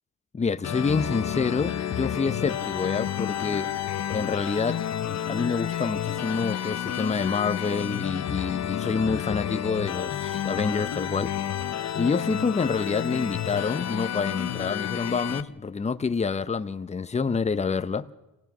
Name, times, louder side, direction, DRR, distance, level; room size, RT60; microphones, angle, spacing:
voice 1, 0.3-3.7 4.1-11.3 11.9-18.1, left 5 dB, 20° left, 0.7 m, -27 dB
sound 1, 0.6-15.4, left 10 dB, 50° left, 0.8 m, -30 dB
26.5 x 17.5 x 6.1 m
cardioid pair, 110°, 35 cm